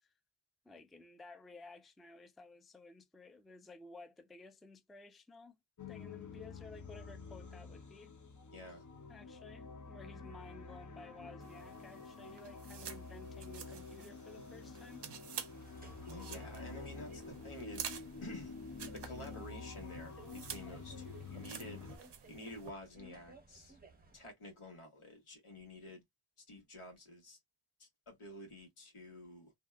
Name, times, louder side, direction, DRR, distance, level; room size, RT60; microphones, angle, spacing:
voice 1, 0.6-5.6 5.9-8.1 9.1-15.0, left 3 dB, ahead, 0.3 m, -55 dB
sound 1, 5.8-22.0, left 4 dB, 40° left, 0.6 m, -49 dB
voice 2, 8.5-8.8 16.1-18.6 18.9-21.9 22.3-23.8 24.1-26.0 26.5-27.4 27.8-29.5, left 1 dB, 90° left, 1.3 m, -50 dB
sound 2, 11.4-22.7, right 8 dB, 60° right, 0.5 m, -50 dB
sound 3, 15.5-24.3, right 3 dB, 20° right, 0.8 m, -59 dB
2.6 x 2.4 x 2.2 m
wide cardioid pair, 50°, 48 cm